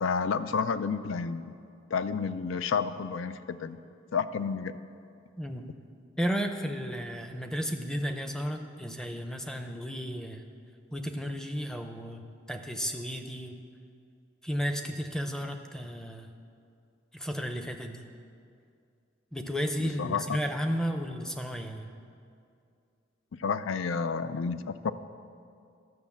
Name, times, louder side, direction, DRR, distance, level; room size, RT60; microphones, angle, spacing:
voice 1, 0.0-1.5 1.9-3.8 4.1-4.8 19.8-20.4 23.4-24.9, left 5 dB, 80° left, 13 dB, 0.4 m, -30 dB
voice 2, 5.4-5.7 6.2-10.4 10.9-13.6 14.4-16.3 17.1-18.0 19.3-21.9, equal, 5° left, 5 dB, 0.6 m, -33 dB
12.0 x 6.3 x 7.2 m, 2.4 s
head